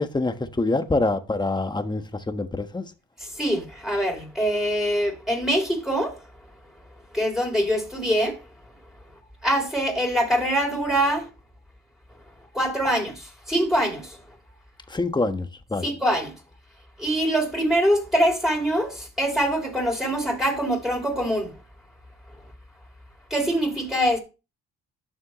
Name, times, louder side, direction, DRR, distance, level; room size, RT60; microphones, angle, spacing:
voice 1, 0.0-2.8 14.9-15.9, left 2 dB, 15° left, 1.2 m, -25 dB
voice 2, 3.4-6.1 7.1-8.4 9.4-11.3 12.5-14.2 15.8-16.3 17.0-21.5 23.3-24.2, equal, ahead, 3.5 m, -24 dB
11.5 x 6.4 x 3.1 m
cardioid pair, 90°, 30 cm